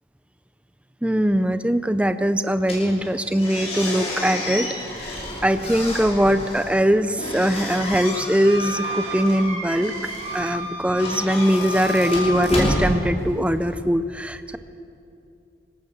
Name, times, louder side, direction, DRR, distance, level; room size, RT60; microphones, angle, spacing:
voice 1, 1.0-4.7 5.0-9.9 10.3-14.6, equal, 5° right, 10 dB, 0.5 m, -21 dB
sound 1, 2.6-13.7, left 1 dB, 35° left, 6.0 m, -30 dB
Wind instrument woodwind instrument, 8.4-12.8, right 1 dB, 35° right, 4.9 m, -32 dB
25.5 x 18.0 x 7.4 m, 2.7 s
head